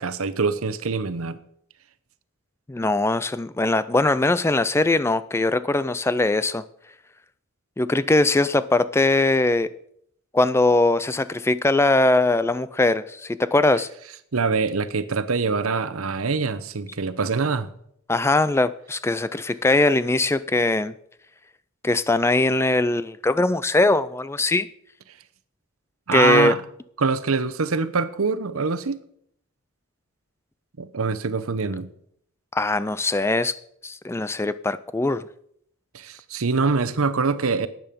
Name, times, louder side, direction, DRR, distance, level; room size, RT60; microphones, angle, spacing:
voice 1, 0.0-1.4 14.3-17.7 26.1-26.6 27.0-29.0 30.8-31.9 35.9-37.7, right 4 dB, 80° right, 14 dB, 0.8 m, -24 dB
voice 2, 2.7-6.6 7.8-9.7 10.3-13.9 18.1-20.9 21.8-24.7 26.1-26.5 32.5-33.5 33.8-35.2, left 2 dB, 10° left, 15 dB, 0.3 m, -21 dB
12.5 x 9.1 x 5.2 m, 0.69 s
head